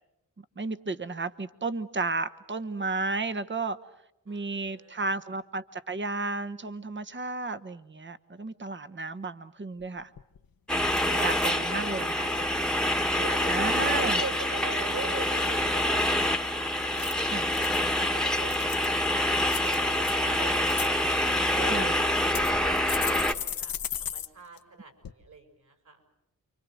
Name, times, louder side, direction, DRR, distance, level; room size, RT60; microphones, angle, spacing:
voice 1, 0.6-3.8 4.3-10.1 10.9-12.1 13.5-14.2 17.3-17.5 21.7-22.0, right 3 dB, 35° right, 12 dB, 1.2 m, -33 dB
voice 2, 4.3-5.1 11.1-12.6 13.1-17.7 18.0-21.1 21.5-21.9 22.2-26.0, right 4 dB, 60° right, 5 dB, 6.5 m, -42 dB
sound 1, 9.8-9.9 10.2-10.5 10.9-11.5 12.0-12.4 16.8-17.8 18.3-19.0 19.5-20.1 20.5-20.9 21.7-21.8 22.3-24.3 24.6-24.7 25.0-25.1, left 8 dB, 80° left, 1.2 m, -36 dB
sound 2, 10.7-23.3, left 1 dB, ahead, 1.4 m, -26 dB
29.0 x 24.5 x 6.4 m, 0.87 s
cardioid pair, 80°, 34 cm